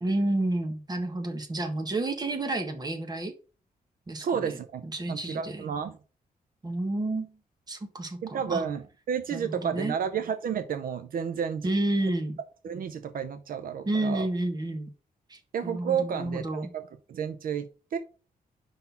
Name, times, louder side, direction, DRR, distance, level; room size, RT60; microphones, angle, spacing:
voice 1, 0.0-3.3 4.1-5.7 6.6-7.3 7.7-8.6 9.3-9.9 11.6-12.4 13.8-14.9 15.3-16.7, right 2 dB, 25° right, 1.4 m, -30 dB
voice 2, 4.2-5.9 8.2-11.7 12.6-14.3 15.5-18.0, right 7 dB, 70° right, 0.6 m, -31 dB
5.5 x 3.9 x 5.7 m
cardioid pair, 110°, 15 cm